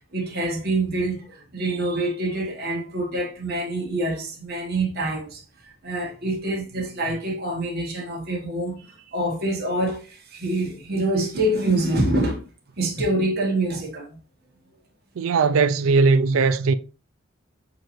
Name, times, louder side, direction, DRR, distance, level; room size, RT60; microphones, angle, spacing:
voice 1, 0.1-5.4 5.8-12.5 12.8-14.2, right 1 dB, 50° right, 1.4 m, -26 dB
voice 2, 15.2-16.7, right 4 dB, 80° right, 0.4 m, -19 dB
6.4 x 3.0 x 2.6 m
head